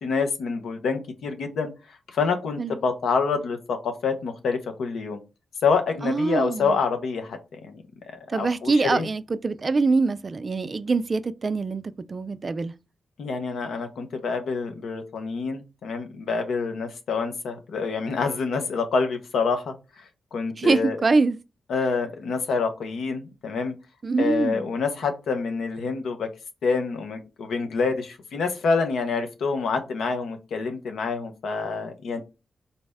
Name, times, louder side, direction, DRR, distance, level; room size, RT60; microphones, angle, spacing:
voice 1, 0.0-1.7 2.1-5.2 5.6-7.8 8.3-9.1 13.2-20.0 20.3-21.0 21.7-23.7 24.2-26.3 26.6-32.2, left 4 dB, 80° left, 0.7 m, -27 dB
voice 2, 6.0-6.8 8.3-11.8 12.1-12.7 20.6-21.4 24.0-24.7, right 3 dB, 45° right, 0.3 m, -24 dB
4.1 x 2.0 x 3.4 m
cardioid pair, 55°, 0 cm